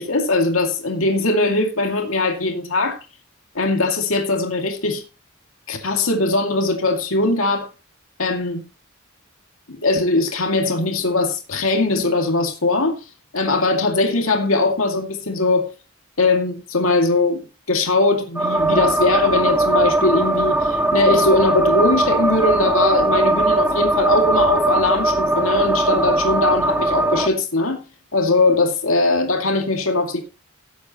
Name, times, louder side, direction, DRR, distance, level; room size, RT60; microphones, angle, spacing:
voice 1, 0.0-3.0 3.5-5.0 5.7-7.7 8.2-8.6 9.7-13.0 13.3-15.7 16.2-27.8 28.1-30.2, left 2 dB, 70° left, 2.4 m, -20 dB
sound 1, 18.3-27.3, right 2 dB, 10° right, 1.0 m, -19 dB
17.0 x 8.4 x 3.0 m
head